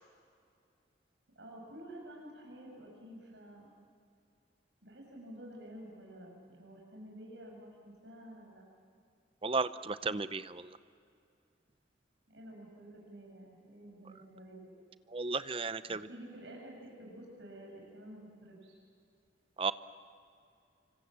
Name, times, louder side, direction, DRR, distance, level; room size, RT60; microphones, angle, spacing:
voice 1, 1.3-3.7 4.8-8.6 12.3-14.8 15.9-18.8, right 1 dB, 80° right, -1 dB, 6.3 m, -50 dB
voice 2, 9.4-10.7 15.1-16.1 19.6-19.7, right 4 dB, 30° right, 13 dB, 0.7 m, -34 dB
27.5 x 25.5 x 7.5 m, 2.4 s
head